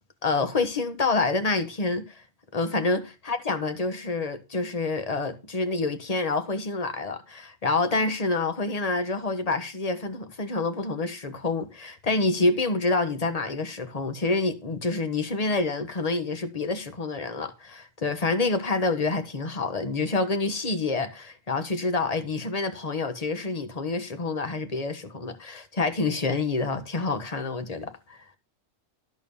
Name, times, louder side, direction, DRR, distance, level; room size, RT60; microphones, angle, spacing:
voice 1, 0.2-2.2 2.5-28.2, left 3 dB, 30° left, 1.2 m, -27 dB
12.5 x 4.5 x 7.0 m
omnidirectional pair, 1.4 m